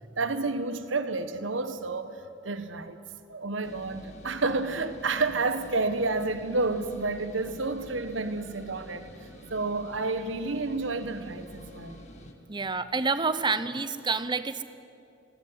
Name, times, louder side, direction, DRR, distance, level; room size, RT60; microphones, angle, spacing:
voice 1, 0.2-3.0 3.3-9.1 9.5-12.0, right 3 dB, 85° right, 1.2 m, -30 dB
sound 1, 3.6-12.3, equal, 40° left, 2.0 m, -48 dB
voice 2, 12.5-14.6, right 4 dB, 25° right, 0.8 m, -28 dB
20.5 x 16.5 x 9.6 m
head